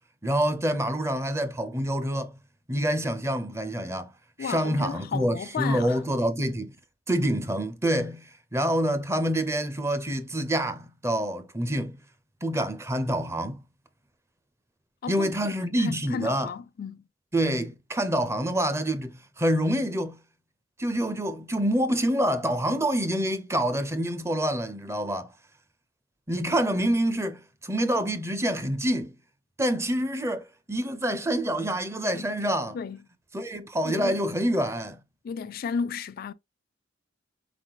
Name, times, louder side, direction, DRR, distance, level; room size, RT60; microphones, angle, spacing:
voice 1, 0.2-2.4 2.7-4.1 4.4-6.7 7.1-12.0 12.4-13.6 15.1-16.5 17.3-20.2 20.8-25.3 26.3-29.1 29.6-32.8 33.3-35.0, right 1 dB, 15° right, 0.5 m, -27 dB
voice 2, 4.4-6.0 15.0-17.0 32.1-32.3 32.7-33.0 33.8-34.2 35.2-36.3, left 6 dB, 50° left, 0.3 m, -34 dB
4.1 x 4.0 x 2.9 m
head